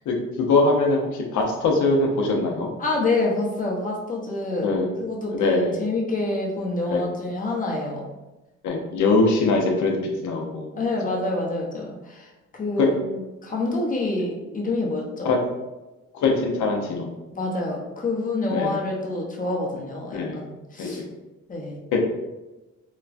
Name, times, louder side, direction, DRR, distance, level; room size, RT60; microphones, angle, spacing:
voice 1, 0.1-2.7 4.6-4.9 5.3-5.8 6.9-7.0 8.6-10.0 10.2-10.7 12.8-12.9 15.2-15.4 16.1-17.1 18.5-18.7 20.1-20.4 20.8-20.9 21.9-22.0, left 3 dB, 75° left, 1 dB, 0.7 m, -22 dB
voice 2, 2.8-4.7 5.0-8.0 10.7-15.3 17.3-21.0 21.5-21.8, left 2 dB, 25° left, -2 dB, 0.7 m, -27 dB
3.0 x 2.2 x 2.5 m, 1.1 s
cardioid pair, 90°, 30 cm